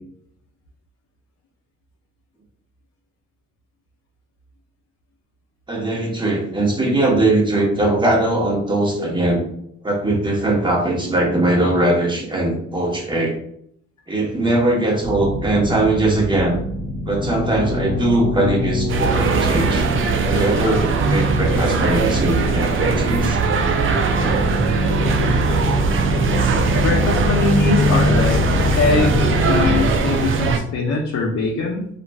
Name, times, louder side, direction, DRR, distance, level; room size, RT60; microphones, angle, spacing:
voice 1, 5.7-9.4 9.8-13.4 14.1-16.6 17.0-19.9 20.3-23.4, right 2 dB, 15° right, -1 dB, 0.9 m, -20 dB
sound 1, 15.0-29.9, left 2 dB, 15° left, 0.6 m, -24 dB
sound 2, 18.9-30.6, right 4 dB, 45° right, 0.4 m, -20 dB
voice 2, 26.8-28.5 28.7-31.9, left 3 dB, 60° left, -1 dB, 0.6 m, -22 dB
3.0 x 2.4 x 2.2 m, 0.70 s
cardioid pair, 90°, 30 cm